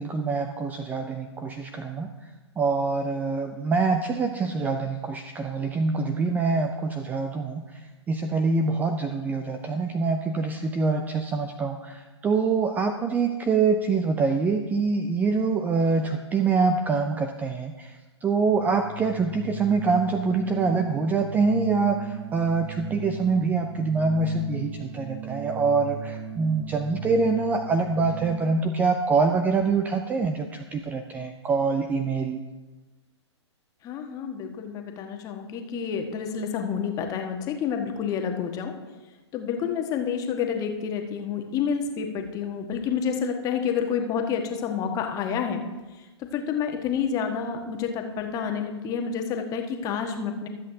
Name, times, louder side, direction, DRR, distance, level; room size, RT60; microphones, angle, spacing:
voice 1, 0.0-2.3 2.6-32.4, right 4 dB, 10° right, 7 dB, 0.4 m, -25 dB
Organ, 18.3-28.6, right 6 dB, 45° right, 2.3 m, -38 dB
voice 2, 33.8-38.7 39.3-45.6 46.3-50.5, left 7 dB, 25° left, 4 dB, 1.3 m, -29 dB
24.5 x 8.2 x 2.8 m, 1.2 s
figure-of-eight pair, 115°, 15 cm